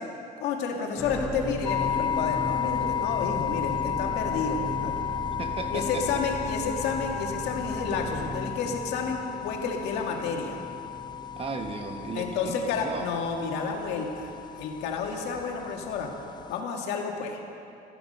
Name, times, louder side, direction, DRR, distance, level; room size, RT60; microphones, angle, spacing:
voice 1, 0.4-4.9 5.7-10.6 12.2-16.1 16.5-17.4, left 5 dB, 85° left, 1 dB, 2.0 m, -31 dB
sound 1, 1.0-13.4 13.9-14.0, equal, 5° left, 0.9 m, -37 dB
sound 2, 1.7-16.6, left 10 dB, 25° left, 0.3 m, -34 dB
voice 2, 5.4-6.2 11.4-13.1, right 4 dB, 35° right, 6 dB, 1.4 m, -35 dB
16.0 x 14.0 x 5.6 m, 2.7 s
cardioid pair, 110°, 17 cm